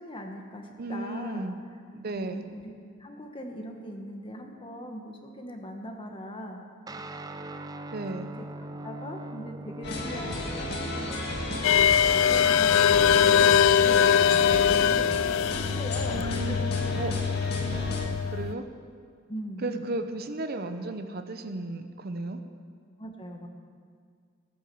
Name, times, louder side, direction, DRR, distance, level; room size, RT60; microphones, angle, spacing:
voice 1, 0.0-1.4 2.1-2.7 3.0-6.6 8.8-11.2 12.2-16.9 19.3-19.9 23.0-23.5, equal, 25° left, 3 dB, 1.5 m, -40 dB
voice 2, 0.8-1.6 1.9-2.5 7.9-8.3 16.1-16.6 16.9-17.1 18.2-18.6 19.6-22.4, right 2 dB, 55° right, 8 dB, 0.8 m, -34 dB
Guitar, 6.9-14.6, right 1 dB, 20° right, 0.6 m, -42 dB
sound 1, 9.8-18.1, left 1 dB, 60° left, 2.0 m, -33 dB
sound 2, 11.6-18.5, left 8 dB, 90° left, 0.3 m, -22 dB
17.0 x 8.7 x 7.0 m, 2.1 s
head